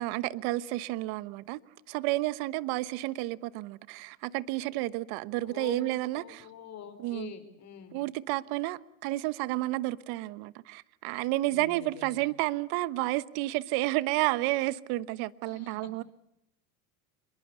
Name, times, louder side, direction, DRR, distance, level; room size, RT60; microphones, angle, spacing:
voice 1, 0.0-1.6 1.9-6.4 7.0-7.3 7.9-16.0, right 18 dB, 60° right, 1.2 m, -31 dB
voice 2, 5.4-8.0 11.5-12.3 15.5-15.9, left 8 dB, 35° left, 5.1 m, -46 dB
26.5 x 23.0 x 8.2 m
supercardioid pair, 105°, 44 cm